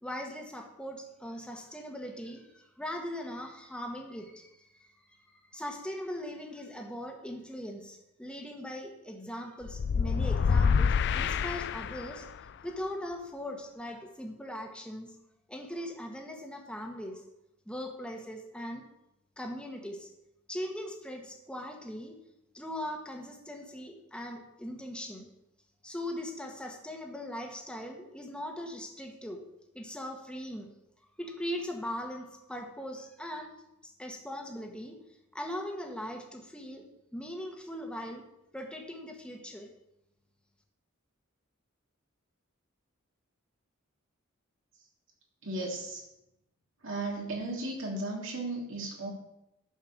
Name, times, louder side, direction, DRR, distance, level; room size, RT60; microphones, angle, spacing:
voice 1, 0.0-12.3 12.6-15.1 15.5-17.2 17.7-18.8 19.4-20.1 20.5-22.2 22.5-25.3 25.8-29.4 29.7-30.7 31.2-33.5 33.8-35.0 35.3-38.3 38.5-39.7, equal, 5° left, 2 dB, 1.4 m, -40 dB
sound 1, 9.7-12.3, left 6 dB, 55° left, 0.4 m, -27 dB
voice 2, 45.4-46.0 46.8-49.1, right 2 dB, 65° right, -1 dB, 2.8 m, -35 dB
9.9 x 5.5 x 6.5 m, 0.87 s
head